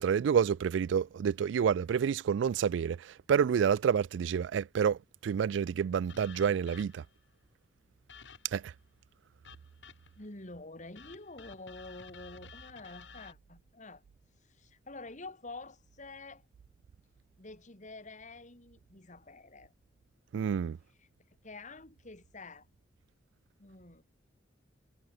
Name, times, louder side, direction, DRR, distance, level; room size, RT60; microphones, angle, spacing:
voice 1, 0.0-7.0 8.5-8.7 20.3-20.8, right 7 dB, 70° right, 0.3 m, -29 dB
sound 1, 6.1-7.2 8.1-8.7 9.4-10.3 11.0-13.3, left 5 dB, 70° left, 3.6 m, -52 dB
voice 2, 10.2-14.0 14.4-16.4 17.4-19.7 21.0-21.1 21.4-22.7 23.6-24.0, left 2 dB, 40° left, 2.8 m, -48 dB
head